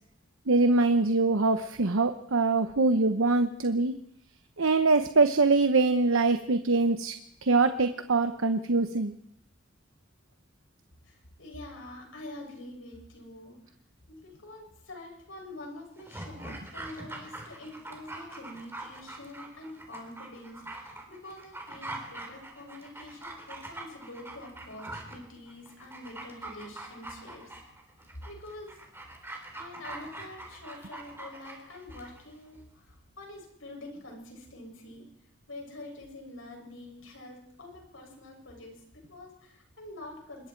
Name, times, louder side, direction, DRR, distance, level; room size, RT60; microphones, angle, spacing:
voice 1, 0.5-3.9 4.6-7.1 7.4-9.1, right 3 dB, 90° right, 9 dB, 0.9 m, -23 dB
voice 2, 11.0-13.6 14.1-27.5 28.2-28.7 29.5-35.1 35.5-40.5, left 1 dB, 80° left, 1 dB, 7.3 m, -46 dB
Dog, 16.0-32.2 32.5-32.6, right 2 dB, 10° right, 3.8 m, -43 dB
26.0 x 21.5 x 4.6 m, 0.72 s
head